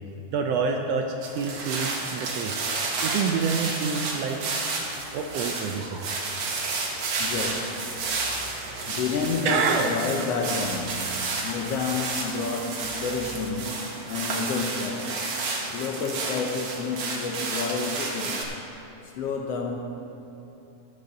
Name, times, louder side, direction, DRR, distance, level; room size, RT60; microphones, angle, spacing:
voice 1, 0.3-2.6 3.0-4.4 5.1-6.0 8.6-8.9 9.4-9.9, right 5 dB, 75° right, 3 dB, 1.5 m, -27 dB
sound 1, 1.2-18.4, right 3 dB, 60° right, 2.1 m, -31 dB
voice 2, 7.2-8.1 8.8-15.3 15.7-18.4 19.0-19.8, left 4 dB, 70° left, 2 dB, 1.6 m, -30 dB
13.0 x 9.8 x 3.9 m, 3.0 s
omnidirectional pair, 3.3 m